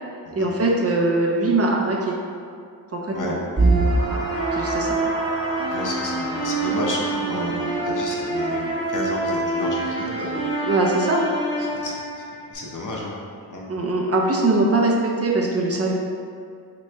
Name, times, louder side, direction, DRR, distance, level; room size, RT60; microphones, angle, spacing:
voice 1, 0.3-2.2 2.9-3.4 4.1-4.2 4.5-5.0 7.2-7.6 10.6-11.2 13.7-15.9, right 2 dB, 40° right, -2 dB, 0.5 m, -22 dB
sound 1, 3.6-12.5, right 2 dB, 10° right, 0.9 m, -25 dB
voice 2, 5.7-7.0 7.3-8.6 8.9-10.4 11.7-11.9 12.5-13.1 13.5-13.8, left 2 dB, 50° left, -2 dB, 0.7 m, -31 dB
3.4 x 3.0 x 3.1 m, 2.2 s
cardioid pair, 75°, 40 cm